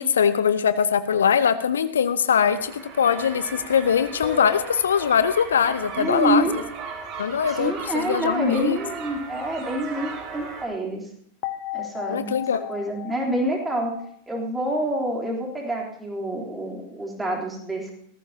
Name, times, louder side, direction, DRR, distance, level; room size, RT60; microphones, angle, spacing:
voice 1, 0.0-2.7 3.0-6.4 7.2-8.8 12.1-12.7, left 7 dB, 65° left, 13 dB, 0.6 m, -22 dB
sound 1, 2.3-10.7, right 5 dB, 35° right, 2.7 m, -37 dB
sound 2, 4.2-5.8 11.4-14.8, left 12 dB, 45° left, 1.0 m, -36 dB
voice 2, 6.0-6.6 7.5-11.0 11.7-14.0 14.3-17.9, right 1 dB, 10° right, 0 dB, 3.5 m, -27 dB
18.0 x 14.5 x 2.9 m, 0.65 s
figure-of-eight pair, 90°, 0 cm